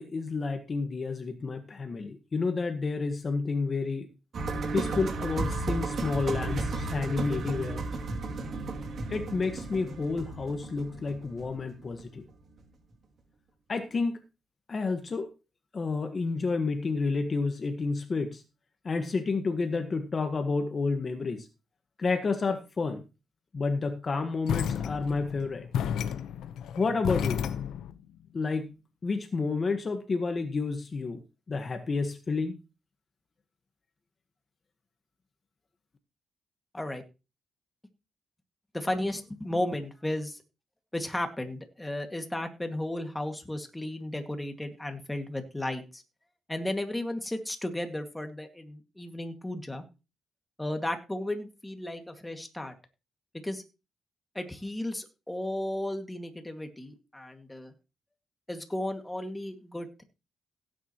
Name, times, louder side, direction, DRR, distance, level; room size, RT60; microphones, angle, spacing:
voice 1, 0.0-4.1 4.7-7.8 9.1-12.3 13.7-14.2 14.7-15.3 15.7-18.4 18.8-21.5 22.0-23.0 23.5-25.7 26.7-27.4 28.3-28.7 29.0-31.2 31.5-32.6, left 4 dB, 40° left, 7 dB, 1.5 m, -30 dB
sound 1, 4.3-12.3 12.6-12.7, right 3 dB, 55° right, 2.7 m, -34 dB
sound 2, 24.5-28.0, left 8 dB, 85° left, 0.9 m, -32 dB
voice 2, 38.7-40.4 40.9-46.0 46.5-49.8 50.6-52.7 53.3-53.6 54.3-57.7 58.5-60.0, left 1 dB, 10° left, 5 dB, 2.1 m, -34 dB
16.5 x 9.4 x 3.1 m, 0.29 s
cardioid pair, 95°, 0 cm